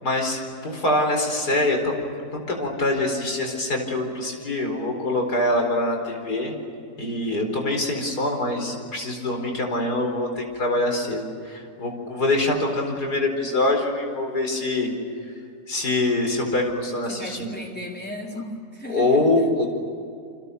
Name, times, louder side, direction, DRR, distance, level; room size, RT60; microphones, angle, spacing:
voice 1, 0.0-6.6 7.0-14.9 15.7-17.5 18.9-19.7, left 2 dB, 80° left, 3 dB, 5.1 m, -24 dB
voice 2, 17.1-19.7, left 1 dB, 5° left, -2 dB, 4.0 m, -36 dB
29.5 x 26.0 x 6.7 m, 2.4 s
omnidirectional pair, 1.7 m